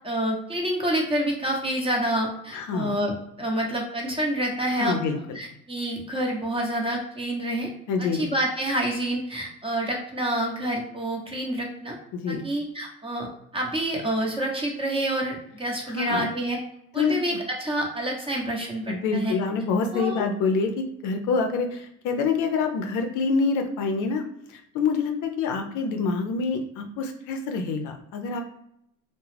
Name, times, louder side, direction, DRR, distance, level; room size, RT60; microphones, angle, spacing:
voice 1, 0.0-7.7 8.0-12.0 12.3-16.6 16.9-19.4 19.9-20.2, right 1 dB, 15° right, 0 dB, 0.7 m, -28 dB
voice 2, 2.5-2.9 4.8-5.4 7.9-8.3 12.1-12.4 15.9-16.3 17.0-17.4 18.9-24.2 24.5-28.4, left 4 dB, 55° left, 5 dB, 0.5 m, -26 dB
2.3 x 2.0 x 3.2 m, 0.75 s
hypercardioid pair, 75°, 36 cm